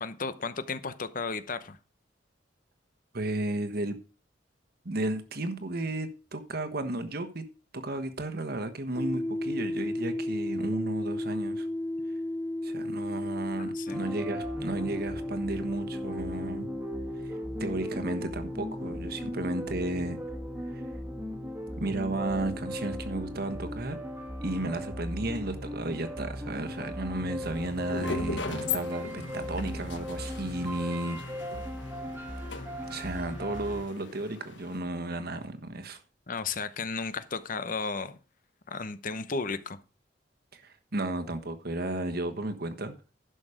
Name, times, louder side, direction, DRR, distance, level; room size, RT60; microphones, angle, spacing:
voice 1, 0.0-1.8 13.6-14.0 36.3-38.2 38.7-39.8, left 4 dB, 50° left, 0.8 m, -34 dB
voice 2, 3.1-4.0 4.8-7.5 7.7-11.7 12.6-16.7 17.2-17.3 17.6-20.2 20.7-20.8 21.8-24.0 24.4-31.4 32.9-36.0 40.5-43.0, right 2 dB, 55° right, 1.3 m, -33 dB
sound 1, 9.0-24.5, left 1 dB, 10° left, 0.6 m, -36 dB
sound 2, 13.9-33.8, equal, 15° right, 1.6 m, -38 dB
sound 3, 27.4-34.8, left 5 dB, 80° left, 1.1 m, -39 dB
11.5 x 6.3 x 5.0 m
head